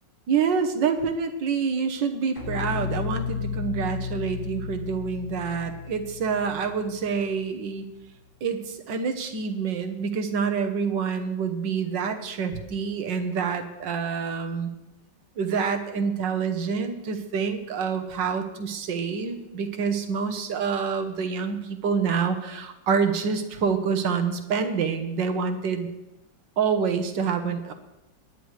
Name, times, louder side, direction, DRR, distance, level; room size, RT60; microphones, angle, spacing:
voice 1, 0.3-7.9 8.4-14.7 15.4-25.9 26.6-27.7, right 6 dB, 70° right, 6 dB, 1.8 m, -27 dB
sound 1, 2.4-7.6, left 7 dB, 65° left, 6.5 m, -33 dB
22.5 x 9.9 x 3.3 m, 0.95 s
omnidirectional pair, 2.0 m